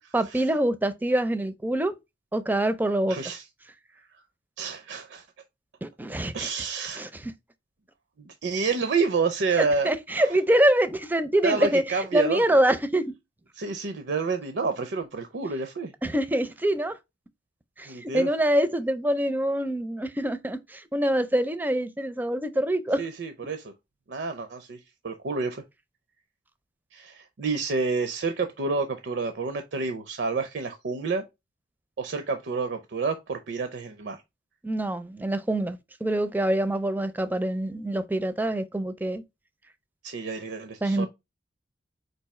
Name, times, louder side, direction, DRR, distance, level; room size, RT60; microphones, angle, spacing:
voice 1, 0.1-2.0 2.3-3.2 5.8-6.5 7.0-7.3 9.6-11.8 12.1-13.1 16.0-17.0 17.8-23.0 34.6-39.2 40.8-41.1, right 1 dB, 10° right, 0.4 m, -25 dB
voice 2, 3.1-3.5 4.1-4.2 4.6-5.3 6.3-7.1 8.2-10.4 11.4-12.4 13.5-15.9 17.9-18.3 23.0-23.7 24.1-25.6 26.9-31.2 32.0-34.2 40.0-41.1, right 4 dB, 70° right, 0.5 m, -29 dB
4.6 x 2.6 x 4.1 m
head